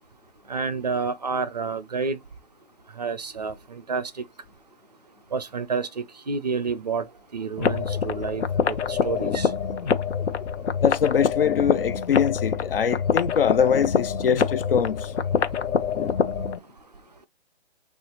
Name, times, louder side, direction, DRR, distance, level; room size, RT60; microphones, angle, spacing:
voice 1, 0.5-2.2 3.0-4.1 5.3-7.1 7.3-9.5, right 4 dB, 40° right, 0.4 m, -29 dB
sound 1, 7.6-16.6, left 6 dB, 85° left, 0.8 m, -25 dB
voice 2, 10.8-15.1, left 7 dB, 55° left, 0.4 m, -23 dB
6.5 x 2.4 x 2.9 m
hypercardioid pair, 165°, 33 cm